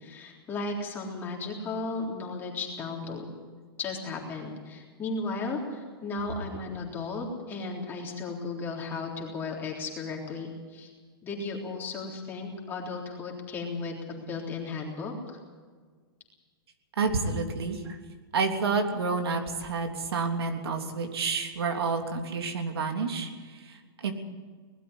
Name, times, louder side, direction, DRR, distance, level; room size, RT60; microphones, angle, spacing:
voice 1, 0.0-3.2 3.8-10.9 11.2-15.4, left 3 dB, 15° left, -1 dB, 3.7 m, -35 dB
voice 2, 17.0-18.0 18.3-24.1, right 4 dB, 90° right, 4 dB, 3.3 m, -29 dB
20.0 x 13.0 x 9.8 m, 1.5 s
hypercardioid pair, 165°, 13 cm